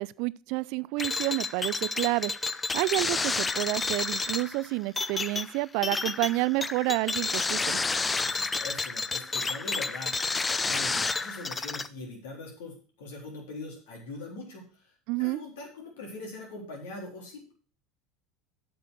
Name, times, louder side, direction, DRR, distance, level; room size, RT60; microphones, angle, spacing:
voice 1, 0.0-2.3 2.7-7.8 15.1-15.4, right 21 dB, 60° right, 0.3 m, -29 dB
sound 1, 1.0-11.9, left 4 dB, 20° left, 0.6 m, -30 dB
voice 2, 8.2-10.1 10.6-14.8 15.2-17.5, left 2 dB, 70° left, 3.9 m, -42 dB
8.3 x 6.9 x 6.3 m
hypercardioid pair, 75°, 0 cm